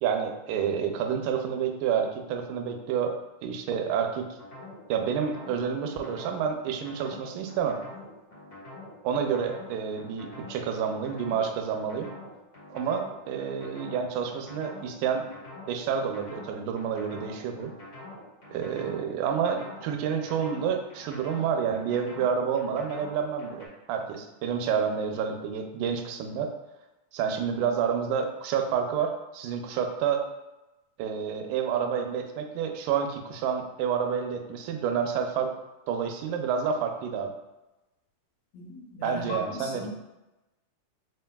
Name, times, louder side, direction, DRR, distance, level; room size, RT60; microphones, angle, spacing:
voice 1, 0.0-3.2 3.4-4.3 4.9-7.8 9.0-12.1 12.7-15.3 15.7-17.7 18.5-26.5 27.1-30.2 31.0-35.5 35.9-37.3 39.0-39.9, right 7 dB, 80° right, 4 dB, 1.9 m, -29 dB
sound 1, 4.4-23.7, left 1 dB, 45° left, 1.4 m, -45 dB
voice 2, 38.5-39.9, left 2 dB, 70° left, -4 dB, 1.8 m, -38 dB
4.4 x 4.0 x 2.2 m, 1.0 s
omnidirectional pair, 3.8 m